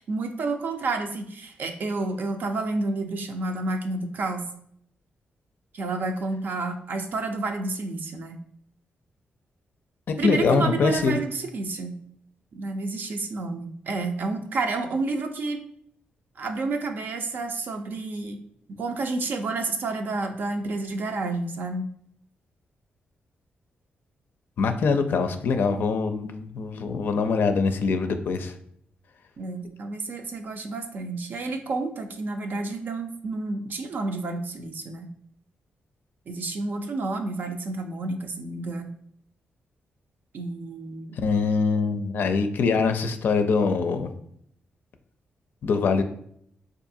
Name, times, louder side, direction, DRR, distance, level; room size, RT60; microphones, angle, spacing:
voice 1, 0.0-4.5 5.7-8.4 10.2-12.0 12.5-15.6 16.4-18.4 18.8-21.9 29.4-35.1 36.3-38.9 40.3-41.2, right 3 dB, 60° right, 5 dB, 0.5 m, -30 dB
voice 2, 10.2-11.2 24.6-28.5 41.2-44.1 45.6-46.0, left 4 dB, 70° left, 7 dB, 0.4 m, -23 dB
4.6 x 2.5 x 2.6 m, 0.67 s
cardioid pair, 105°, 4 cm